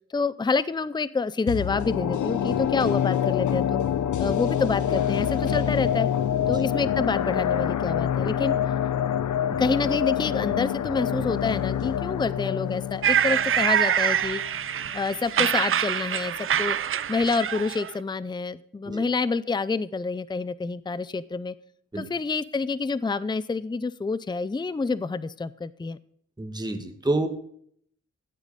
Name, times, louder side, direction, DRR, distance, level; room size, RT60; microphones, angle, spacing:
voice 1, 0.1-3.8 4.2-6.1 6.5-8.6 9.6-14.4 14.9-16.8 17.1-21.5 22.0-26.0, left 4 dB, 15° left, 17 dB, 0.5 m, -27 dB
sound 1, 1.5-14.6 14.9-15.0, left 9 dB, 90° left, 0.7 m, -26 dB
sound 2, 13.0-17.9, right 9 dB, 45° right, 0.4 m, -25 dB
voice 2, 26.4-27.3, right 2 dB, 15° right, 6 dB, 1.4 m, -28 dB
13.5 x 8.1 x 5.3 m, 0.64 s
cardioid pair, 80°, 29 cm